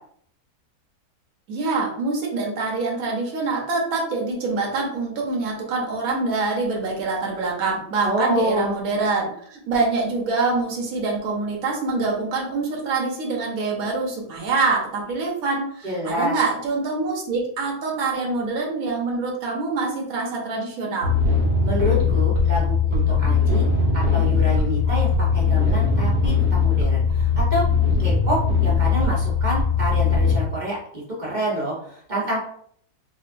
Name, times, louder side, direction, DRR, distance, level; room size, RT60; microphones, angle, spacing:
voice 1, 1.5-21.1, right 3 dB, 65° right, -2 dB, 1.2 m, -25 dB
voice 2, 8.0-8.7 15.8-16.3 21.6-23.7 23.9-27.6 28.0-32.4, equal, 35° right, -5 dB, 0.9 m, -27 dB
sound 1, 21.0-30.4, left 5 dB, 90° right, 1.3 m, -20 dB
3.8 x 2.5 x 2.5 m, 0.62 s
omnidirectional pair, 1.7 m